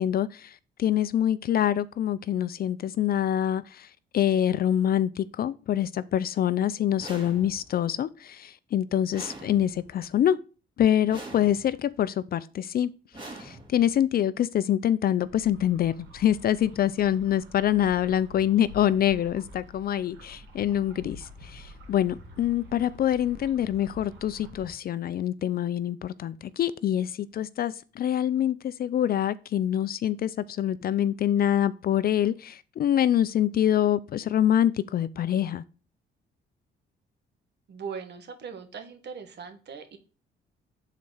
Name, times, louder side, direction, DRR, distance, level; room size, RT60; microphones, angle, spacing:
voice 1, 0.0-3.9 4.1-10.4 10.8-12.9 13.4-35.6, left 10 dB, 50° left, 0.4 m, -25 dB
sound 1, 7.0-7.8 9.1-10.0 11.1-11.9 13.1-14.0, right 2 dB, 25° right, 2.6 m, -44 dB
sound 2, 15.2-24.7, left 1 dB, 80° right, 2.3 m, -48 dB
voice 2, 37.7-40.0, right 6 dB, 60° right, 1.3 m, -40 dB
6.6 x 4.1 x 4.7 m
cardioid pair, 90°, 20 cm